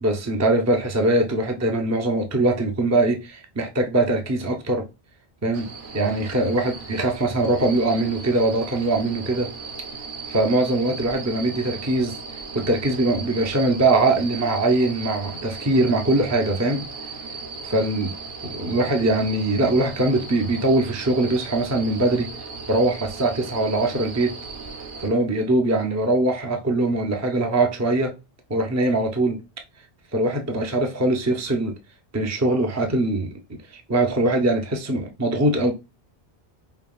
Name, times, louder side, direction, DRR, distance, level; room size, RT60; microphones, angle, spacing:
voice 1, 0.0-4.9 5.4-5.7 5.9-9.5 10.3-12.1 12.5-16.8 17.6-18.1 18.4-22.3 22.7-24.4 25.0-28.1 28.5-29.4 30.1-31.7 32.1-33.3 33.7-35.7, right 2 dB, 25° right, 0.4 m, -22 dB
sound 1, 5.5-25.1, right 4 dB, 55° right, 0.9 m, -37 dB
5.3 x 2.8 x 2.3 m
omnidirectional pair, 1.1 m